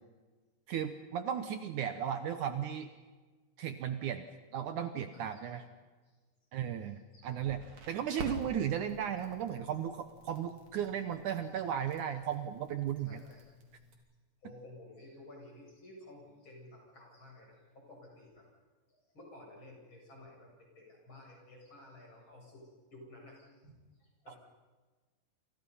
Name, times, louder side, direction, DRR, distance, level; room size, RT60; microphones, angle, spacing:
voice 1, 0.7-2.9 3.6-4.2 4.5-5.6 6.5-7.6 7.9-13.2, right 9 dB, 90° right, 9 dB, 1.7 m, -35 dB
voice 2, 5.1-5.6 6.1-6.2 6.8-7.3 9.2-9.3 11.4-11.5 13.0-13.5 14.4-18.5 18.9-23.7 24.0-24.4, left 1 dB, 25° left, -1 dB, 8.5 m, -54 dB
Crackle, 7.4-13.9, right 1 dB, 40° right, 4.1 m, -49 dB
28.5 x 28.0 x 5.6 m, 1.3 s
omnidirectional pair, 5.1 m